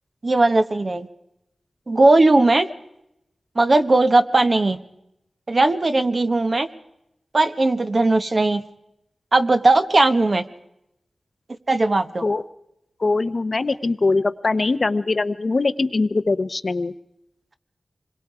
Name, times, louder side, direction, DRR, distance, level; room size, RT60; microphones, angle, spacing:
voice 1, 0.2-1.1 1.9-2.7 3.5-4.8 5.5-6.7 7.3-8.6 9.3-10.4 11.7-12.2, right 2 dB, 40° right, 8 dB, 1.2 m, -18 dB
voice 2, 13.0-16.9, left 3 dB, 45° left, 12 dB, 0.8 m, -22 dB
27.0 x 21.5 x 4.9 m, 0.82 s
wide cardioid pair, 110°, 0 cm